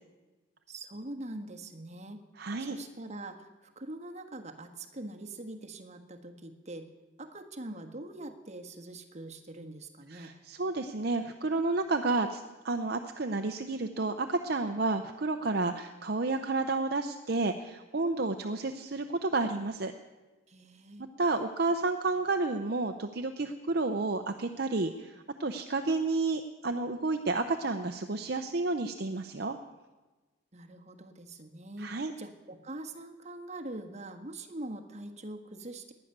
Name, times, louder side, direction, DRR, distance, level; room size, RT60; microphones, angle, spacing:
voice 1, 0.7-2.2 2.6-6.9 7.2-10.3 20.5-21.0 30.5-35.9, right 2 dB, 35° right, 5 dB, 1.5 m, -43 dB
voice 2, 2.4-2.8 10.1-19.9 21.2-29.6 31.8-32.1, right 3 dB, 50° right, 6 dB, 0.7 m, -31 dB
18.5 x 11.0 x 6.7 m, 1.2 s
head